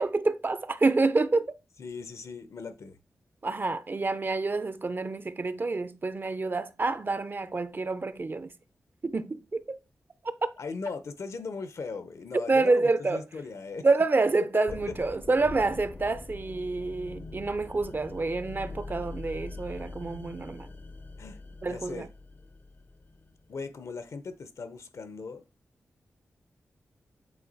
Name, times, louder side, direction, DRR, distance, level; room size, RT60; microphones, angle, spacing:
voice 1, 0.0-1.5 3.4-8.5 9.0-9.8 12.5-13.2 13.8-20.7 21.6-22.1, right 3 dB, 40° right, 0.6 m, -28 dB
voice 2, 1.8-3.0 10.6-13.9 14.9-15.0 21.2-21.4 21.6-22.1 23.5-25.4, left 4 dB, 70° left, 0.8 m, -38 dB
sound 1, 14.7-23.5, left 3 dB, 35° left, 0.6 m, -43 dB
8.1 x 2.9 x 4.1 m
cardioid pair, 55°, 5 cm